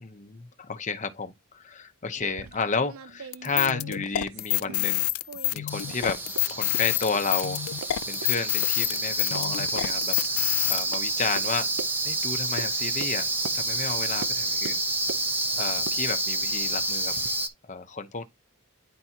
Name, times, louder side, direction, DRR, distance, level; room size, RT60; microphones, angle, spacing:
voice 1, 0.0-5.1 5.5-6.2 6.5-7.6 8.1-11.7 12.0-13.3 13.5-14.8 15.5-17.1 17.6-18.2, left 4 dB, 35° left, 0.9 m, -32 dB
sound 1, 2.2-5.0 5.2-6.0 6.3-6.4 6.7-6.8 7.1-7.2 7.8-7.9 8.2-8.3 8.6-8.7 9.0-9.4 9.8-9.9 10.2-10.3 10.9-11.0 11.4-11.5 11.8-11.9 12.6-12.7 13.0-13.1 13.4-13.6 14.2-14.3 14.6-15.3 15.8-17.3, right 5 dB, 75° right, 0.6 m, -41 dB
sound 2, 3.3-10.8, left 18 dB, 75° left, 0.3 m, -28 dB
sound 3, 5.7-17.5, right 2 dB, 10° right, 0.7 m, -29 dB
10.5 x 4.1 x 2.9 m
head